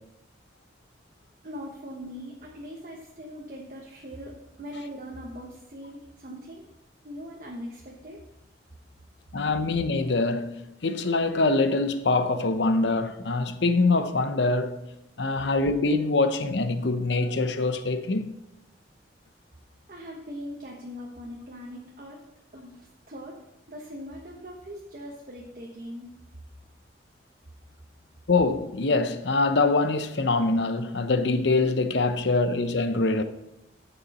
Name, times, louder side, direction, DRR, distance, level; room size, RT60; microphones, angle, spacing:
voice 1, 1.4-6.7 7.0-8.2 19.9-22.2 22.5-26.1, equal, 45° right, 1.0 m, -41 dB
voice 2, 9.3-14.8 15.2-18.3 28.3-33.2, left 3 dB, 70° left, 0.8 m, -24 dB
10.5 x 7.1 x 4.2 m
head